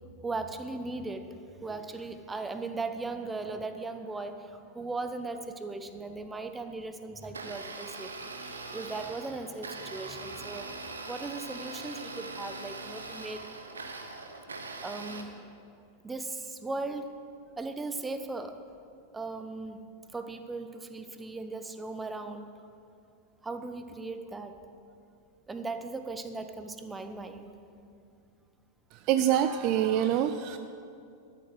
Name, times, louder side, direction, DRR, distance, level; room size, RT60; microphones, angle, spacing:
voice 1, 0.2-10.7 11.1-13.4 14.8-15.3 16.0-17.1 17.6-18.6 19.1-19.8 20.1-22.5 23.4-24.6 25.5-27.5, right 3 dB, 10° right, 8 dB, 0.7 m, -38 dB
Domestic sounds home sounds, 7.2-15.2, right 3 dB, 75° right, 0.9 m, -41 dB
voice 2, 28.9-30.6, right 10 dB, 40° right, 10 dB, 0.4 m, -26 dB
12.5 x 7.7 x 6.2 m, 2.4 s
figure-of-eight pair, 90°, 0 cm